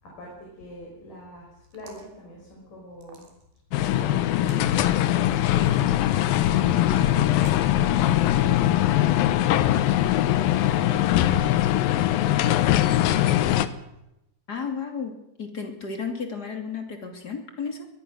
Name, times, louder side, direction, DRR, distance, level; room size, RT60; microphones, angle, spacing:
voice 1, 0.0-3.3 3.7-6.5 6.9-7.5 7.9-9.5 10.7-13.2, equal, 50° left, -2 dB, 7.1 m, -44 dB
sound 1, 1.6-2.1 3.0-3.6 4.3-4.7 5.9-6.4 7.4-7.7, right 2 dB, 75° right, 5.4 m, -48 dB
sound 2, 3.7-13.7, left 13 dB, 70° left, 2.5 m, -21 dB
voice 2, 14.5-15.1 15.4-17.9, left 5 dB, 30° left, 4 dB, 2.6 m, -33 dB
23.5 x 20.5 x 6.4 m, 0.86 s
omnidirectional pair, 4.7 m